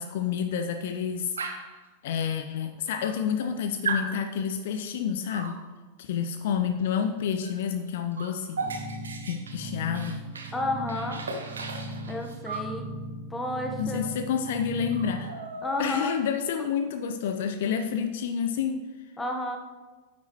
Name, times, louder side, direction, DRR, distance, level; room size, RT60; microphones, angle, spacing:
voice 1, 0.0-1.3 2.0-5.6 6.0-8.6 9.2-10.2 13.8-15.4 15.8-18.8, left 7 dB, 55° left, 7 dB, 0.5 m, -29 dB
Dog, 1.4-1.8 2.6-2.7 3.0-3.5 3.8-4.1 5.3-5.6 7.4-7.6 7.9-10.6 10.9-12.7 14.0-14.1 14.4-14.6 14.9-16.2, right 3 dB, 70° right, 0.9 m, -36 dB
sound 1, 8.6-15.3, right 1 dB, 45° right, 1.6 m, -38 dB
voice 2, 10.5-11.2 12.1-12.9 13.3-14.1 15.6-16.1 16.6-16.7 19.2-19.6, left 1 dB, 10° left, 2 dB, 1.2 m, -31 dB
9.4 x 8.4 x 3.1 m, 1.3 s
figure-of-eight pair, 90°, 0 cm